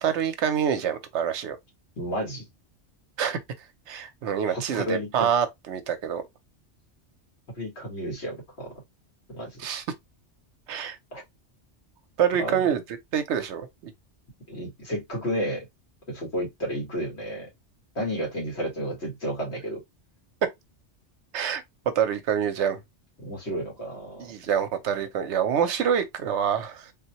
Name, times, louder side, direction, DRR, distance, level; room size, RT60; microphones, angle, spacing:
voice 1, 0.0-1.6 3.2-3.4 3.9-6.2 9.6-9.8 10.7-11.0 12.2-12.8 13.1-13.7 21.3-21.6 22.0-22.8 24.2-26.9, right 8 dB, 75° right, 0.9 m, -26 dB
voice 2, 2.0-2.4 4.4-5.3 7.6-8.7 9.3-9.6 11.1-11.2 12.4-12.7 14.5-15.7 16.1-17.5 18.0-19.8 23.2-24.3, equal, 65° left, 2.0 m, -32 dB
3.5 x 2.2 x 2.8 m
omnidirectional pair, 1.2 m